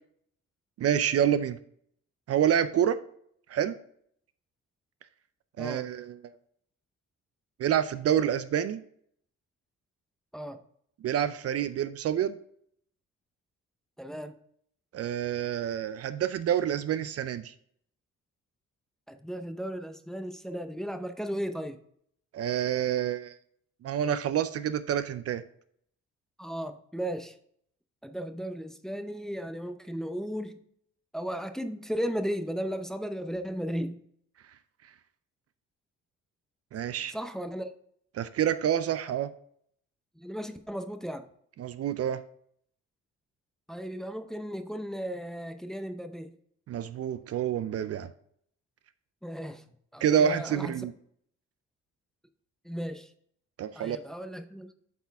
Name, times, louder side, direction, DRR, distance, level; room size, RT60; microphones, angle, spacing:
voice 1, 0.8-1.6 2.3-3.0 3.5-3.8 5.6-6.3 7.6-8.8 11.0-12.3 14.9-17.5 22.3-23.3 23.8-25.4 36.7-37.1 38.1-39.3 41.6-42.2 46.7-48.1 50.0-50.9 53.6-54.0, right 9 dB, 55° right, 13 dB, 0.4 m, -28 dB
voice 2, 14.0-14.4 19.1-21.8 26.4-27.4 28.0-30.5 31.1-34.0 37.1-37.7 40.2-41.3 43.7-46.3 49.2-49.6 49.9-50.9 52.6-53.1 53.7-54.7, equal, ahead, 8 dB, 0.6 m, -35 dB
8.1 x 4.2 x 3.5 m, 0.66 s
cardioid pair, 90°, 30 cm